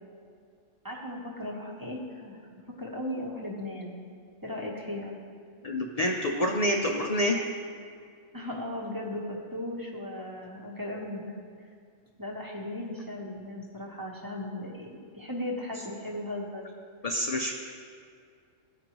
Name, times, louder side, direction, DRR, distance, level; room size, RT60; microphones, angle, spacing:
voice 1, 0.8-2.4 2.8-3.9 4.4-5.1 8.3-11.2 12.2-16.6, left 1 dB, 20° right, -3 dB, 0.9 m, -36 dB
voice 2, 5.6-7.4 17.0-17.5, left 1 dB, 50° left, 1 dB, 0.4 m, -27 dB
15.0 x 5.2 x 3.0 m, 2.2 s
omnidirectional pair, 1.3 m